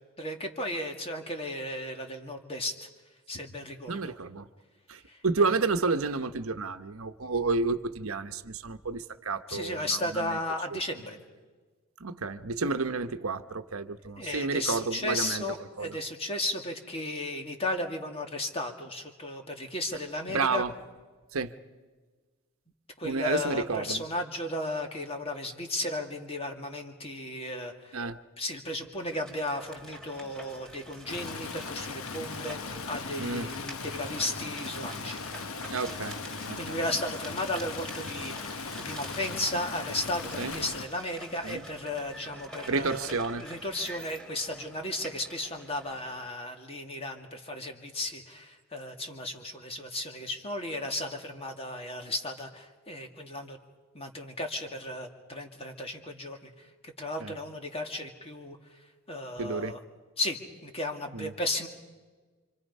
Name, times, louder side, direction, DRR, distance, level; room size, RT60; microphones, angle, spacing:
voice 1, 0.2-2.9 3.3-4.1 5.1-5.2 9.5-11.2 14.2-20.6 23.0-28.0 28.4-35.2 36.6-43.1 43.4-53.6 53.9-58.6 59.1-59.8 60.2-61.7, left 1 dB, 30° left, 4 dB, 2.3 m, -35 dB
voice 2, 3.9-4.5 4.9-10.4 10.7-10.8 12.0-15.4 15.8-16.0 20.3-20.7 21.3-21.5 23.0-24.0 27.9-28.2 33.2-33.5 35.7-36.2 36.5-36.8 40.4-40.6 41.4-41.6 42.7-43.5 57.2-57.3 59.4-59.8 61.1-61.3, right 4 dB, 75° right, 9 dB, 1.0 m, -31 dB
sound 1, 29.0-46.3, right 1 dB, 5° left, 3.2 m, -47 dB
Stream, 31.1-40.9, left 4 dB, 80° left, 1.1 m, -38 dB
28.0 x 26.0 x 5.5 m, 1.4 s
head